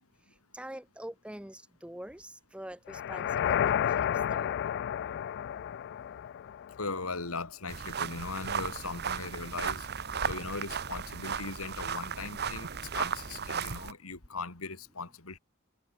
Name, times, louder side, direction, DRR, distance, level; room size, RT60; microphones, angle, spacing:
voice 1, 0.5-3.6 4.0-4.5, right 1 dB, 5° right, 1.4 m, -44 dB
sound 1, 2.9-7.0, left 9 dB, 55° left, 0.3 m, -31 dB
voice 2, 6.8-9.9 10.2-12.7 12.9-15.4, left 3 dB, 90° left, 3.3 m, -39 dB
sound 2, 7.7-13.9, right 6 dB, 50° right, 1.4 m, -35 dB
head